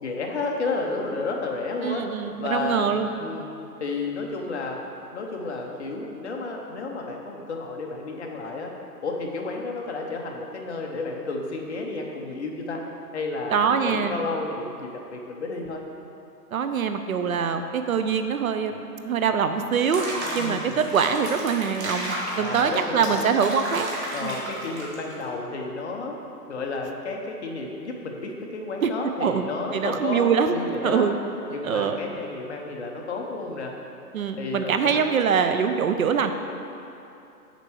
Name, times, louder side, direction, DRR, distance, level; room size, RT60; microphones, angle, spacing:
voice 1, 0.0-2.1 2.4-2.9 3.2-4.8 5.1-8.7 9.0-12.8 13.1-15.8 20.4-20.8 22.3-23.2 24.1-26.2 26.5-31.2 31.5-33.7 34.3-35.1, left 3 dB, 45° left, 1 dB, 0.9 m, -31 dB
voice 2, 1.8-3.1 13.5-14.2 16.5-20.1 20.3-23.9 24.2-24.4 28.8-28.9 29.2-29.4 29.7-31.1 31.6-32.0 34.1-36.3, right 6 dB, 60° right, 8 dB, 0.5 m, -24 dB
Water / Bathtub (filling or washing), 19.7-25.2, right 1 dB, 45° right, 1.4 m, -33 dB
6.9 x 4.5 x 6.1 m, 2.7 s
hypercardioid pair, 170°, 48 cm